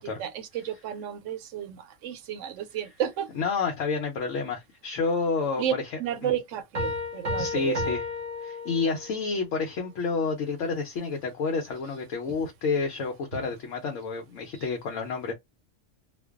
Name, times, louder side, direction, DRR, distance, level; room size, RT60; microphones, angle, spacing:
voice 1, 0.0-3.3 5.6-5.7 6.0-7.9 12.4-12.5 13.3-13.4, right 10 dB, 85° right, 0.9 m, -32 dB
voice 2, 3.4-5.8 6.2-6.3 7.4-8.0 8.4-15.3, left 4 dB, 85° left, 1.0 m, -29 dB
sound 1, 6.7-9.2, left 2 dB, 40° right, 0.7 m, -32 dB
2.5 x 2.2 x 2.3 m
omnidirectional pair, 1.3 m